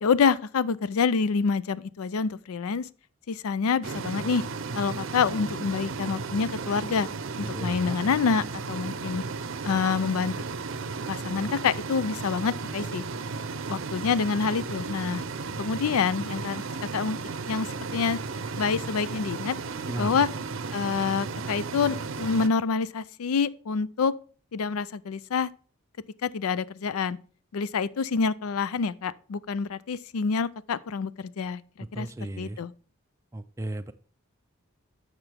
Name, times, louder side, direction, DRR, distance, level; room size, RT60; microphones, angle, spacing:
voice 1, 0.0-2.9 3.3-4.4 4.7-7.1 7.4-9.2 9.6-10.4 11.1-13.0 13.7-15.2 15.6-16.6 16.9-17.2 17.5-18.2 18.6-19.6 20.0-20.3 20.7-24.1 24.5-25.5 26.2-27.2 27.5-31.6 31.9-32.1 32.4-32.7, left 5 dB, 85° left, 0.4 m, -27 dB
sound 1, 3.8-22.5, right 4 dB, 65° right, 0.6 m, -34 dB
voice 2, 7.4-8.0 19.9-20.1 31.9-32.6 33.3-33.9, right 1 dB, 15° right, 0.4 m, -34 dB
10.5 x 6.7 x 3.4 m
head